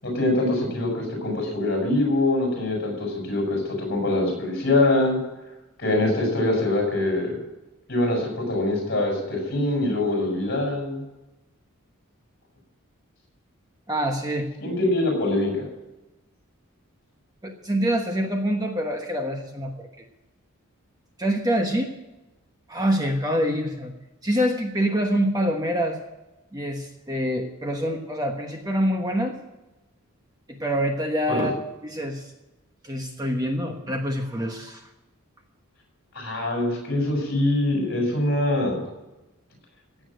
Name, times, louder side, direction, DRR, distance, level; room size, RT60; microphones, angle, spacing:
voice 1, 0.0-5.2 5.8-7.3 7.9-11.0 14.6-15.7 31.3-31.4 36.1-38.8, left 2 dB, 45° left, 0 dB, 7.1 m, -24 dB
voice 2, 13.9-14.5 17.4-19.9 21.2-21.9 22.7-23.9 24.2-26.0 26.5-29.3 30.6-31.5 31.8-32.3 32.8-34.9, equal, 15° right, 3 dB, 1.1 m, -25 dB
16.0 x 8.8 x 7.7 m, 1.0 s
head